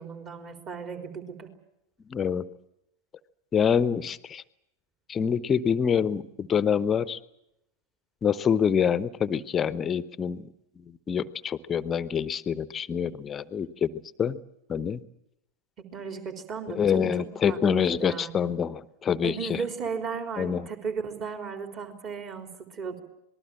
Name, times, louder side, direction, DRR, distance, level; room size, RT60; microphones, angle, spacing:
voice 1, 0.0-1.5 15.9-17.1 17.5-18.3 19.2-23.0, right 5 dB, 30° right, 6 dB, 3.7 m, -35 dB
voice 2, 2.1-2.4 3.5-4.4 5.1-7.2 8.2-10.5 10.8-13.9 14.2-14.4 14.7-15.0 16.7-19.6 20.4-20.7, left 7 dB, 25° left, 17 dB, 0.9 m, -26 dB
26.5 x 20.0 x 7.6 m, 0.83 s
figure-of-eight pair, 90°, 0 cm